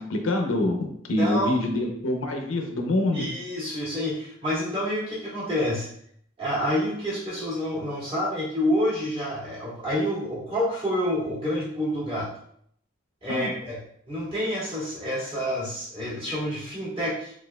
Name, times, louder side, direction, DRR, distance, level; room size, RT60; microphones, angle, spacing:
voice 1, 0.0-3.3 13.3-13.5, left 1 dB, 80° left, 2 dB, 0.6 m, -26 dB
voice 2, 1.2-1.6 3.1-5.9 6.4-12.3 13.2-13.8 14.1-17.3, equal, 25° right, -9 dB, 1.5 m, -28 dB
4.1 x 2.5 x 2.2 m, 0.66 s
head